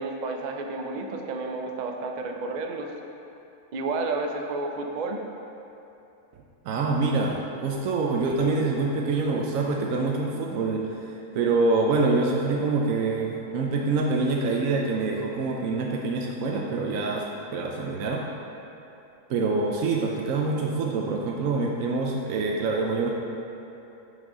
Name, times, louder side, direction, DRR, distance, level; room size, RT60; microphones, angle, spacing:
voice 1, 0.0-2.9 3.7-5.2, right 3 dB, 55° right, 2 dB, 0.4 m, -31 dB
voice 2, 6.6-17.2 17.5-18.2 19.3-23.1, right 3 dB, 75° right, -1 dB, 1.0 m, -25 dB
8.0 x 5.4 x 3.8 m, 2.8 s
omnidirectional pair, 1.5 m